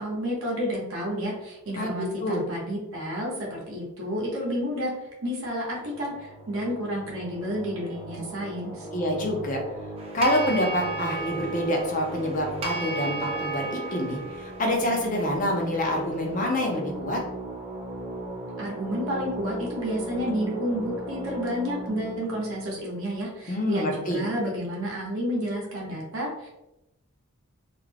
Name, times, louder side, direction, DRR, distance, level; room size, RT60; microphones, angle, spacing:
voice 1, 0.0-4.9 5.2-8.9 18.6-26.5, equal, 65° right, -3 dB, 0.7 m, -30 dB
sound 1, 5.7-23.9, right 1 dB, 5° right, 0.6 m, -38 dB
voice 2, 8.9-9.6 10.1-17.2 23.5-24.2, left 1 dB, 35° left, 1 dB, 0.5 m, -26 dB
sound 2, 10.0-16.3, right 3 dB, 25° right, 0.3 m, -35 dB
2.4 x 2.1 x 3.2 m, 0.92 s
head